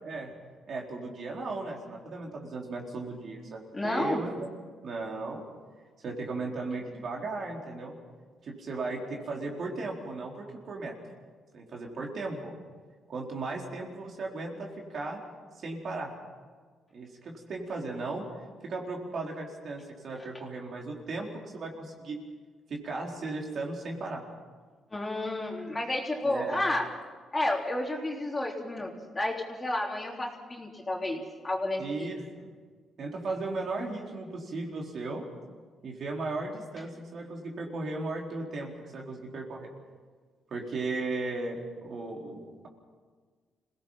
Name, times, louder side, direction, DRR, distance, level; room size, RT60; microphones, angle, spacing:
voice 1, 0.7-4.3 4.8-5.4 6.0-8.0 8.4-10.9 11.5-12.5 13.1-15.2 15.6-16.1 16.9-18.2 18.6-22.2 22.7-24.2 26.2-26.6 31.8-32.5 33.0-35.3 35.8-39.7 40.5-42.7, right 3 dB, 55° right, 0 dB, 4.2 m, -36 dB
voice 2, 3.7-4.2 24.9-26.9 27.3-32.1, left 1 dB, 20° left, -1 dB, 3.7 m, -31 dB
26.5 x 18.0 x 5.8 m, 1.5 s
cardioid pair, 90°, 0 cm